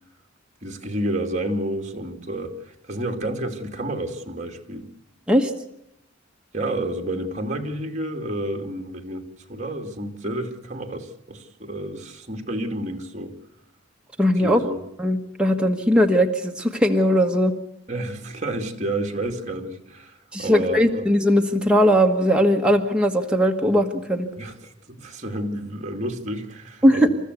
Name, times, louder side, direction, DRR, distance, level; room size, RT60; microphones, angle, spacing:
voice 1, 0.6-4.9 6.5-13.4 14.4-14.8 17.9-21.0 24.4-27.1, right 1 dB, 35° right, 3 dB, 2.5 m, -30 dB
voice 2, 14.2-14.6 15.0-17.5 20.3-24.3 26.8-27.1, equal, 5° right, 1 dB, 1.4 m, -19 dB
28.5 x 14.0 x 8.2 m, 0.81 s
head